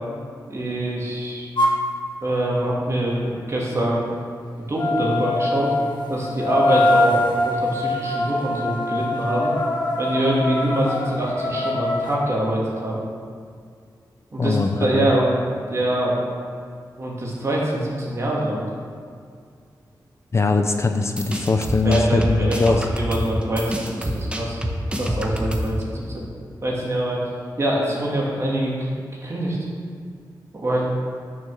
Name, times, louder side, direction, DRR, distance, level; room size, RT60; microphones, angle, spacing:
voice 1, 0.5-1.5 2.2-4.1 4.7-5.7 6.1-9.5 10.0-13.0 14.3-15.4 15.7-16.2 17.0-18.6 21.8-24.6 25.0-26.2 26.6-27.2 27.6-28.9 29.2-29.6 30.5-30.8, right 1 dB, 40° right, -4 dB, 2.7 m, -24 dB
sound 1, 1.6-1.8 4.7-12.2, left 2 dB, 90° left, 1.3 m, -23 dB
voice 2, 14.4-15.1 20.3-22.9, left 3 dB, 35° left, 6 dB, 0.6 m, -21 dB
sound 2, 21.0-25.8, equal, 15° right, 1.1 m, -27 dB
10.5 x 6.8 x 6.4 m, 2.2 s
wide cardioid pair, 120°, 8 cm